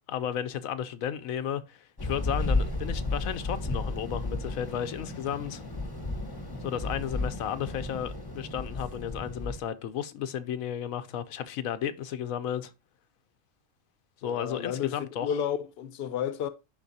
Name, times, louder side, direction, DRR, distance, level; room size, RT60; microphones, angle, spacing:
voice 1, 0.1-5.6 6.6-12.7 14.2-15.4, left 9 dB, 85° left, 1.1 m, -33 dB
sound 1, 2.0-9.6, left 2 dB, 20° left, 1.1 m, -33 dB
voice 2, 14.2-16.5, left 8 dB, 55° left, 0.9 m, -32 dB
11.0 x 3.8 x 2.7 m
omnidirectional pair, 1.4 m